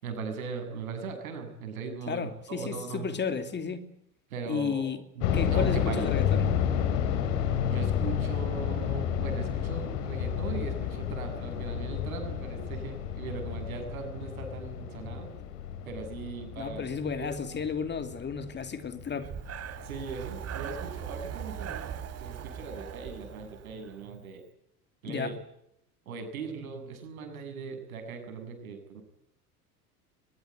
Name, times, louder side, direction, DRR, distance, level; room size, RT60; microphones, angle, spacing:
voice 1, 0.0-3.1 4.3-4.9 5.2-6.1 7.7-15.3 15.9-16.8 17.2-17.3 19.8-21.9 22.2-24.4 25.0-25.3 26.1-29.0, right 5 dB, 65° right, 7.5 m, -39 dB
voice 2, 2.1-3.8 4.5-5.0 5.3-6.5 16.6-19.3 25.0-25.4, left 6 dB, 25° left, 2.7 m, -33 dB
sound 1, 5.2-20.1 20.4-20.5 21.1-21.3, left 8 dB, 55° left, 3.6 m, -31 dB
Breathing, 19.1-24.1, right 8 dB, 35° right, 3.8 m, -40 dB
23.5 x 21.5 x 9.2 m
figure-of-eight pair, 75°, 45 cm